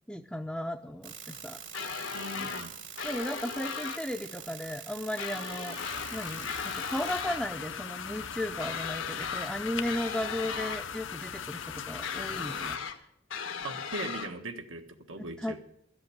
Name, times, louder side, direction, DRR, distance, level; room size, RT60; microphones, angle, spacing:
voice 1, 0.1-1.6 2.4-2.5 3.0-5.8 6.1-12.8 15.2-15.6, left 1 dB, 5° left, 3 dB, 0.5 m, -35 dB
sound 1, 1.0-7.2, right 8 dB, 65° right, 1.8 m, -45 dB
sound 2, 1.7-2.7 3.0-4.0 5.2-6.1 6.5-7.4 8.6-9.5 9.9-10.8 12.0-13.0 13.3-14.3, left 6 dB, 90° left, 1.5 m, -37 dB
voice 2, 2.1-2.7 13.6-15.6, right 2 dB, 85° right, 6 dB, 1.4 m, -39 dB
sound 3, 5.8-12.8, left 7 dB, 70° left, 0.7 m, -39 dB
13.0 x 7.9 x 9.2 m, 0.72 s
head